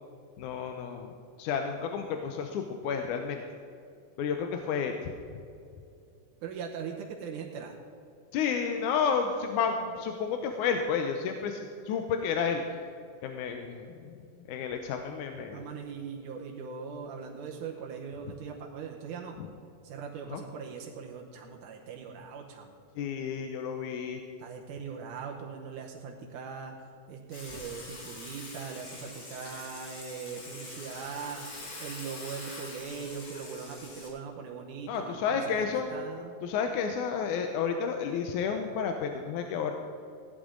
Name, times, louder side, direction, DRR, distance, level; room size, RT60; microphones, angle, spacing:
voice 1, 0.4-1.1 1.4-3.4 4.2-5.0 8.3-12.6 13.2-14.1 14.5-15.7 19.4-19.5 20.3-20.4 23.0-24.2 34.9-35.9 36.4-39.7, left 6 dB, 85° left, 4 dB, 2.2 m, -31 dB
voice 2, 6.4-7.8 15.5-19.4 19.8-22.7 24.4-26.7 27.1-31.4 31.8-36.4, right 6 dB, 90° right, 1 dB, 2.4 m, -40 dB
Water / Water tap faucet / Sink (filling or washing), 27.3-34.1, left 2 dB, 45° left, 2.7 m, -44 dB
16.5 x 11.0 x 3.8 m, 2.5 s
omnidirectional pair, 3.5 m